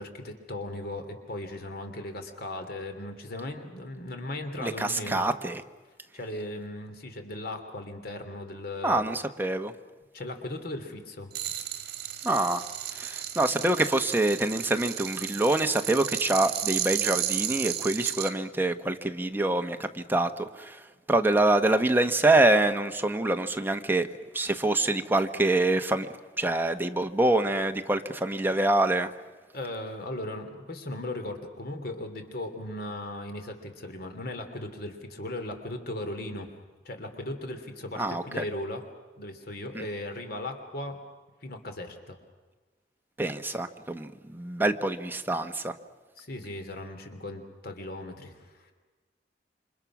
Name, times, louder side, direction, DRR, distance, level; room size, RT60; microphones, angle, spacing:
voice 1, 0.0-5.3 6.1-9.0 10.1-11.3 29.5-36.5 36.8-38.8 39.2-41.0 41.4-42.2 46.2-48.7, left 1 dB, 60° left, 6 dB, 3.0 m, -37 dB
voice 2, 4.6-5.6 8.8-9.7 12.2-12.6 12.9-20.8 21.1-24.1 24.3-26.1 26.4-29.1 38.0-38.4 39.7-39.8 43.2-45.7, right 2 dB, 10° right, 6 dB, 1.2 m, -25 dB
sound 1, 11.3-18.3, right 11 dB, 60° right, 2.1 m, -33 dB
28.5 x 25.0 x 6.1 m, 1.3 s
head